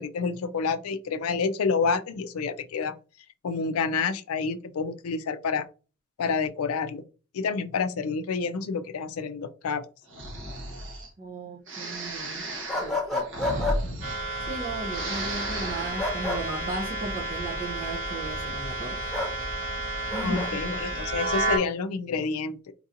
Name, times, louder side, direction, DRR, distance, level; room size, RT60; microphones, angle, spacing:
voice 1, 0.0-2.9 3.4-5.7 6.2-7.0 7.3-9.8 20.2-22.7, left 5 dB, 80° left, 0.4 m, -28 dB
Breathing, 10.1-11.1 11.7-14.6 14.8-16.0, right 1 dB, 55° right, 1.0 m, -34 dB
voice 2, 11.2-12.5 12.8-14.0 14.4-19.1 20.1-21.0, right 2 dB, 35° right, 0.6 m, -36 dB
sound 1, 12.7-13.8 16.0-16.4 19.1-19.3 20.1-20.5, left 2 dB, ahead, 1.1 m, -29 dB
sound 2, 14.0-21.6, right 2 dB, 75° right, 2.1 m, -31 dB
4.5 x 2.7 x 2.5 m
head